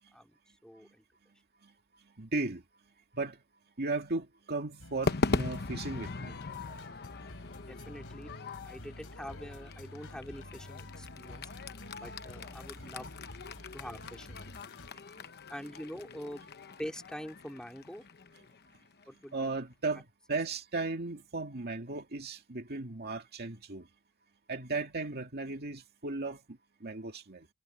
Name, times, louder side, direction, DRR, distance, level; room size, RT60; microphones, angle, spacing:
voice 1, 0.6-1.0 7.7-8.3 8.6-11.5 12.0-13.1 13.7-14.5 15.5-16.4 16.8-18.0 19.1-19.5, equal, 5° left, 3.0 m, -44 dB
voice 2, 2.2-2.6 3.1-3.4 3.8-6.4 13.6-13.7 19.3-23.9 24.5-27.5, right 3 dB, 45° right, 2.2 m, -36 dB
sound 1, 4.8-14.9, left 1 dB, 65° left, 6.1 m, -49 dB
Crowd / Fireworks, 5.1-19.5, left 3 dB, 50° left, 1.0 m, -40 dB
head